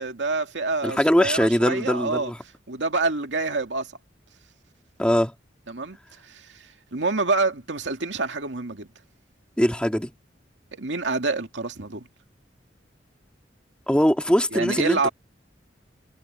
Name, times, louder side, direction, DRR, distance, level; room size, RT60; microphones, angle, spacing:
voice 1, 0.0-2.3 2.7-3.9 5.7-6.0 6.2-8.9 10.7-12.1 14.5-15.1, right 3 dB, 90° right, 2.3 m, -27 dB
voice 2, 0.8-2.4 5.0-5.3 9.6-10.1 13.9-15.1, equal, 5° left, 2.0 m, -21 dB
head